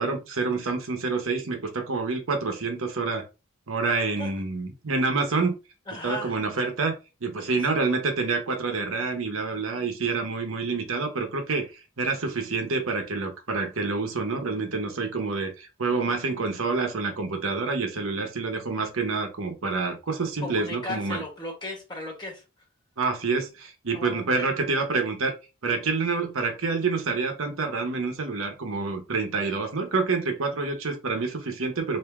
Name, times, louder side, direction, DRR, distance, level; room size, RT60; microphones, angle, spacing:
voice 1, 0.0-3.2 3.7-5.5 6.0-21.2 23.0-25.3 25.6-32.0, right 4 dB, 80° right, 0.9 m, -27 dB
voice 2, 5.9-6.4 7.4-7.8 20.4-22.4 23.9-24.5, left 1 dB, 20° left, 1.4 m, -36 dB
3.3 x 2.7 x 3.5 m
head